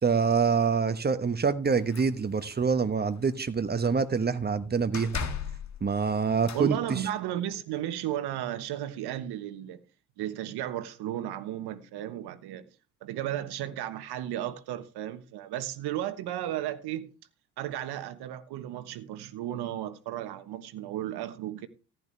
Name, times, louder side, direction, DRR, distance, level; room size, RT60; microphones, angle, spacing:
voice 1, 0.0-5.2 5.8-7.0, right 5 dB, 20° right, 1.3 m, -26 dB
sound 1, 1.6-2.6 3.0-3.3 3.6-4.2 4.9-6.7, left 6 dB, 40° left, 1.8 m, -38 dB
voice 2, 6.5-9.8 10.2-12.7 13.0-17.1 17.6-21.7, right 12 dB, 60° right, 1.3 m, -34 dB
15.0 x 10.5 x 3.4 m
hypercardioid pair, 55°, 44 cm